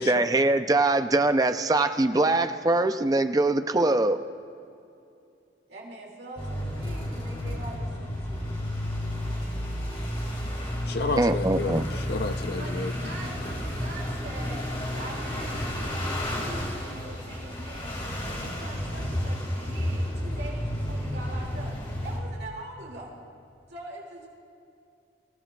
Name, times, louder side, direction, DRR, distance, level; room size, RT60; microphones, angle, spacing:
voice 1, 0.0-4.2 11.2-11.9, right 2 dB, 20° right, 9 dB, 0.4 m, -23 dB
voice 2, 5.7-8.4 12.6-14.7 15.0-21.7 22.0-23.2 23.7-24.3, right 2 dB, 60° right, -2 dB, 2.3 m, -43 dB
sound 1, 6.4-22.2, equal, 30° left, 2.2 m, -31 dB
voice 3, 10.9-12.9, left 3 dB, 55° left, 9 dB, 0.6 m, -31 dB
25.0 x 15.0 x 2.3 m, 2.6 s
head